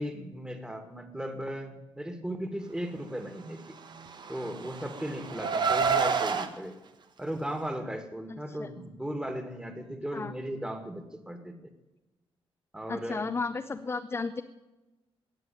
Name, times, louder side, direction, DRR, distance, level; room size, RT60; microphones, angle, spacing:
voice 1, 0.0-3.8 4.3-6.8 7.2-11.7 12.7-13.3, equal, 10° right, 7 dB, 2.0 m, -37 dB
Car, 4.0-6.5, right 5 dB, 45° right, 1.3 m, -28 dB
voice 2, 8.3-8.7 10.1-10.3 12.9-14.4, left 4 dB, 25° left, 7 dB, 0.7 m, -34 dB
19.0 x 7.0 x 9.1 m, 1.1 s
cardioid pair, 110°, 10 cm